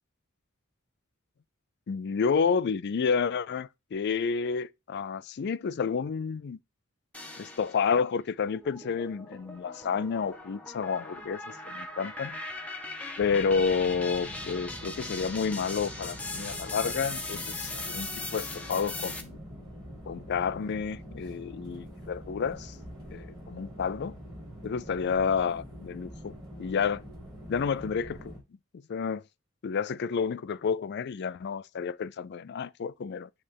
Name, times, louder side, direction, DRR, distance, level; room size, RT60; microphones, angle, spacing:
voice 1, 1.9-6.6 7.4-12.4 13.2-19.4 20.1-22.7 23.1-24.1 24.6-27.0 27.5-28.3 28.9-29.2 29.6-33.3, left 6 dB, 55° left, 0.4 m, -30 dB
sound 1, 7.1-8.0 8.5-19.2, left 2 dB, 5° left, 1.0 m, -39 dB
sound 2, 13.2-28.4, equal, 20° right, 2.7 m, -45 dB
9.8 x 3.3 x 3.5 m
head